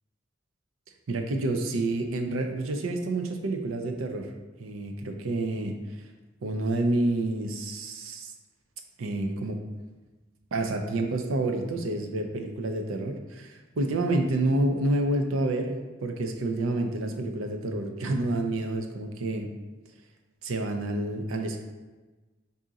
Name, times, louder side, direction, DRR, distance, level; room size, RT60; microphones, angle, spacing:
voice 1, 1.1-4.3 4.6-5.7 6.4-8.3 9.0-9.6 10.5-15.7 16.0-19.5 20.4-21.6, right 2 dB, 90° right, 5 dB, 0.5 m, -28 dB
3.6 x 2.8 x 3.8 m, 1.2 s
head